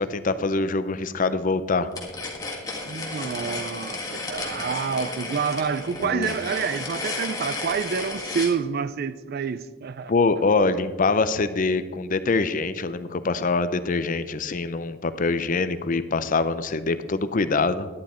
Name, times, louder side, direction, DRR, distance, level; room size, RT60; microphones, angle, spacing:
voice 1, 0.0-1.9 6.0-6.3 10.1-17.9, left 3 dB, 40° left, 0.5 m, -24 dB
sound 1, 1.9-8.5, left 3 dB, 20° left, 1.7 m, -33 dB
voice 2, 2.9-10.1, right 6 dB, 50° right, 0.4 m, -28 dB
11.5 x 9.5 x 4.3 m
head